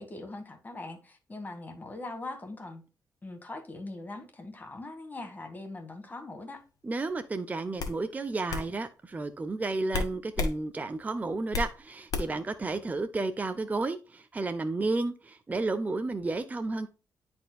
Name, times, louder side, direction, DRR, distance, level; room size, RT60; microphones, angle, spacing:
voice 1, 0.0-2.8 3.2-6.6, left 2 dB, 25° left, 1.9 m, -41 dB
voice 2, 6.8-16.9, right 3 dB, 25° right, 0.6 m, -32 dB
sound 1, 7.0-7.2 7.8-8.0 8.5-8.7 9.9-10.6 10.9-11.7 12.1-12.5, left 4 dB, 60° left, 1.5 m, -31 dB
10.0 x 4.3 x 2.3 m
cardioid pair, 90°, 7 cm